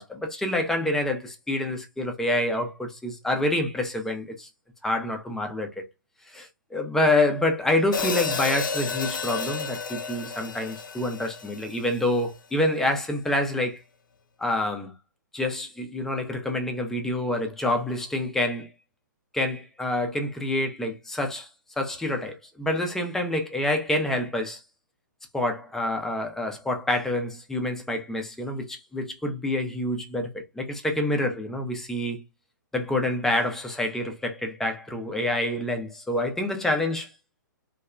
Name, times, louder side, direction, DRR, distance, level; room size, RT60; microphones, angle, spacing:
voice 1, 0.0-4.5 4.8-5.9 6.3-13.8 14.4-14.9 15.3-18.7 19.3-21.5 21.8-24.6 25.3-32.2 32.7-37.1, left 1 dB, 5° left, 0.5 m, -27 dB
Hi-hat, 7.9-12.1, left 5 dB, 75° left, 0.5 m, -31 dB
2.8 x 2.3 x 2.2 m
figure-of-eight pair, 120°, 11 cm